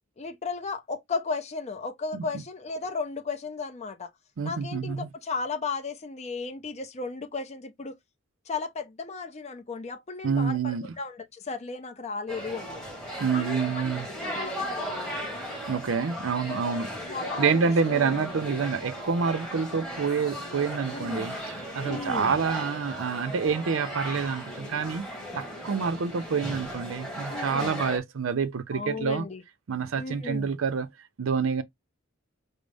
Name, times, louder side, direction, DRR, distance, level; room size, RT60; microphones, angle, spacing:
voice 1, 0.0-4.1 4.4-8.0 8.5-12.8 13.3-15.2 16.5-17.6 17.9-18.4 20.9-21.3 21.8-22.4 27.3-27.8 28.7-29.4 30.0-30.5, left 4 dB, 35° left, 0.5 m, -35 dB
voice 2, 4.4-5.1 10.2-10.9 13.2-14.1 15.7-16.9 17.4-25.1 25.3-29.3 29.7-30.9 31.2-31.6, right 5 dB, 75° right, 0.5 m, -27 dB
sound 1, 12.3-28.0, equal, 5° left, 1.4 m, -36 dB
5.1 x 2.0 x 3.3 m
head